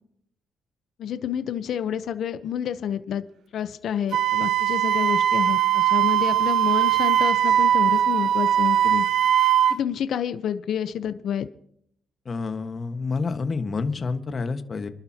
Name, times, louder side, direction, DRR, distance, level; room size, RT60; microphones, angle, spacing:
voice 1, 1.0-3.2 3.5-9.1 9.7-11.5, left 9 dB, 70° left, 11 dB, 0.9 m, -29 dB
Wind instrument woodwind instrument, 4.1-9.8, right 10 dB, 70° right, 0.5 m, -20 dB
voice 2, 12.2-14.9, left 4 dB, 40° left, 8 dB, 1.5 m, -28 dB
27.0 x 12.0 x 2.9 m, 0.68 s
cardioid pair, 90°, 0 cm